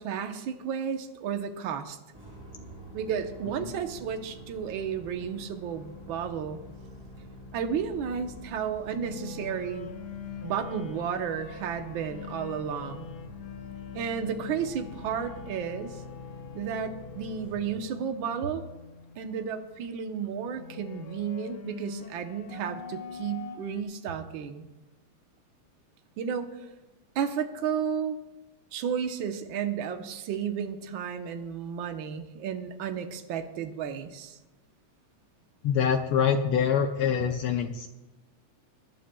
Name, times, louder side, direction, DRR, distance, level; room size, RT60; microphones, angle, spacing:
voice 1, 0.0-2.0 2.9-6.6 7.5-10.0 10.4-13.1 13.9-16.0 16.5-18.6 19.2-24.7 26.2-26.5 27.1-28.2 28.7-34.4, right 7 dB, 75° right, 6 dB, 1.1 m, -32 dB
sound 1, 2.1-17.9, left 1 dB, 5° right, 4.1 m, -47 dB
sound 2, 3.9-23.8, left 7 dB, 65° left, 2.0 m, -45 dB
voice 2, 35.6-37.9, left 7 dB, 85° left, 5 dB, 1.2 m, -25 dB
22.0 x 11.5 x 2.3 m, 1.1 s
omnidirectional pair, 3.3 m